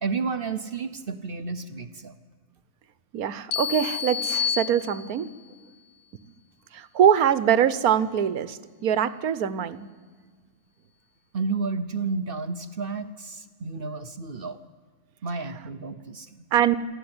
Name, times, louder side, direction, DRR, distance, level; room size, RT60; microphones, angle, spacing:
voice 1, 0.0-2.2 11.3-14.6 15.2-16.4, right 4 dB, 45° right, 11 dB, 1.0 m, -31 dB
voice 2, 3.1-5.3 6.7-9.9 16.5-16.8, right 9 dB, 85° right, 16 dB, 1.4 m, -23 dB
sound 1, 3.5-5.4, left 7 dB, 90° left, 1.4 m, -29 dB
27.5 x 12.5 x 9.6 m, 1.5 s
omnidirectional pair, 1.5 m